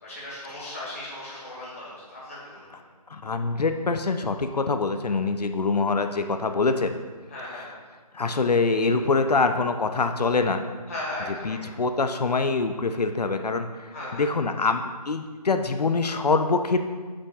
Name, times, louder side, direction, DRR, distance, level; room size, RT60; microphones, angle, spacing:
voice 1, 0.0-2.8 7.3-7.7 10.9-11.8 13.9-14.3, left 1 dB, 20° left, -7 dB, 2.1 m, -37 dB
voice 2, 3.1-6.9 7.5-7.7 8.1-10.6 11.4-16.8, left 4 dB, 75° left, 7 dB, 0.6 m, -24 dB
8.6 x 7.5 x 2.4 m, 1.4 s
figure-of-eight pair, 175°, 21 cm